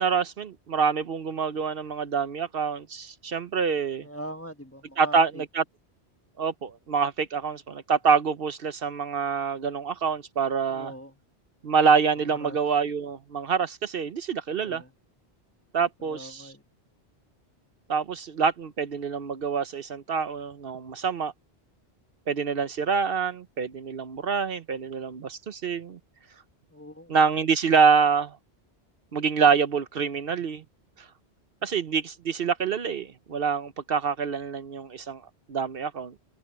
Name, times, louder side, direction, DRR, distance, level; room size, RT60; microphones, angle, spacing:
voice 1, 0.0-4.1 5.0-5.6 6.4-10.9 11.6-14.8 15.7-16.5 17.9-21.3 22.3-26.0 27.1-28.4 29.1-30.6 31.6-35.2 35.5-36.1, right 6 dB, 60° right, 0.9 m, -26 dB
voice 2, 4.0-5.4 10.7-11.2 12.1-12.6 14.5-14.9 16.0-16.6 26.7-27.2, right 1 dB, 15° left, 1.1 m, -42 dB
open air
omnidirectional pair, 1.1 m